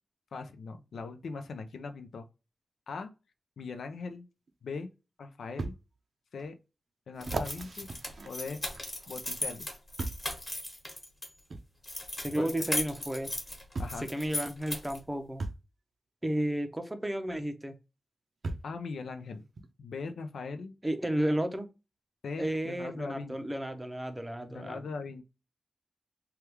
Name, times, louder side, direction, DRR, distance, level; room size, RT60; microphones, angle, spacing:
voice 1, 0.3-2.2 2.9-3.1 3.6-4.3 4.6-4.9 5.2-5.8 6.3-6.6 7.1-7.9 8.2-8.6 9.1-9.7 12.3-12.5 13.8-14.1 18.6-19.4 19.8-20.7 22.2-23.4 24.5-25.2, left 4 dB, 90° left, 0.5 m, -40 dB
sound 1, 4.5-4.6 5.6-5.8 6.4-6.5 7.2-9.1 10.0-10.3 11.5-11.7 12.9-13.0 13.7-14.1 15.4-15.6 17.3-17.4 18.4-18.8 19.6-19.7, right 3 dB, 60° right, 0.5 m, -37 dB
sound 2, 7.2-11.3 11.8-15.0, left 1 dB, 25° left, 1.3 m, -37 dB
voice 2, 12.2-13.3 14.0-15.4 16.2-17.7 20.8-21.7 22.4-24.8, right 1 dB, 10° right, 0.5 m, -32 dB
3.4 x 2.3 x 2.9 m
wide cardioid pair, 100°, 0 cm